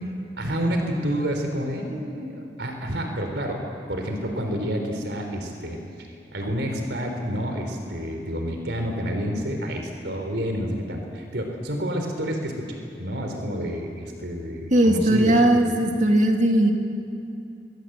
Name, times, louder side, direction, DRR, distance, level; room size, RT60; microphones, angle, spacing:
voice 1, 0.4-3.6 3.9-15.7, equal, 80° right, 3 dB, 3.6 m, -29 dB
voice 2, 14.7-16.7, right 1 dB, 45° right, 3 dB, 2.4 m, -18 dB
27.5 x 22.5 x 8.0 m, 2.6 s
head